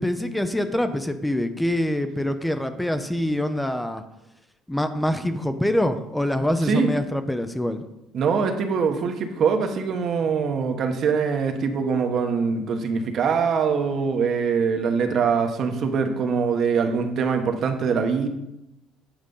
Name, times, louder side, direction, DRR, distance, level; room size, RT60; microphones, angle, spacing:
voice 1, 0.0-4.0 4.7-7.9, left 1 dB, 5° left, 9 dB, 0.5 m, -25 dB
voice 2, 8.1-18.3, right 5 dB, 50° right, 6 dB, 1.1 m, -23 dB
8.9 x 5.0 x 5.4 m, 0.87 s
cardioid pair, 135°, 0 cm